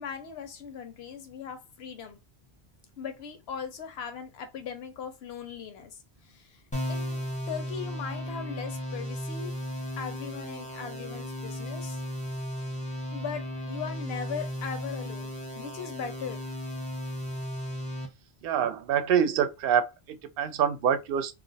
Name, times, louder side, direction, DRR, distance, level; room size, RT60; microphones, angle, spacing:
voice 1, 0.0-2.2 3.0-7.2 7.5-9.6 10.0-12.0 13.1-16.5, left 7 dB, 80° left, 0.9 m, -39 dB
sound 1, 6.7-18.1, left 1 dB, 10° left, 0.7 m, -35 dB
voice 2, 18.4-21.3, right 8 dB, 65° right, 0.7 m, -26 dB
2.4 x 2.0 x 3.9 m
omnidirectional pair, 1.1 m